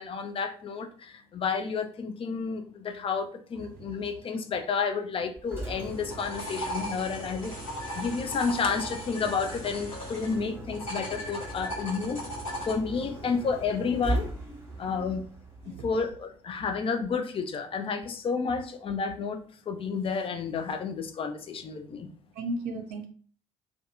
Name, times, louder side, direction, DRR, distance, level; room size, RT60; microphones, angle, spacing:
voice 1, 0.0-7.5 7.9-12.2 12.7-14.3 14.8-15.2 15.7-19.4 19.7-22.1, left 5 dB, 35° left, 6 dB, 0.5 m, -31 dB
Engine, 5.4-16.3, right 1 dB, 15° right, 1.1 m, -39 dB
sound 1, 5.8-10.4 10.7-12.8, left 1 dB, 90° left, 0.9 m, -38 dB
voice 2, 14.7-15.1 15.6-15.8 22.4-23.1, right 2 dB, 60° right, 5 dB, 0.5 m, -36 dB
2.6 x 2.3 x 2.4 m, 0.43 s
figure-of-eight pair, 50°, 17 cm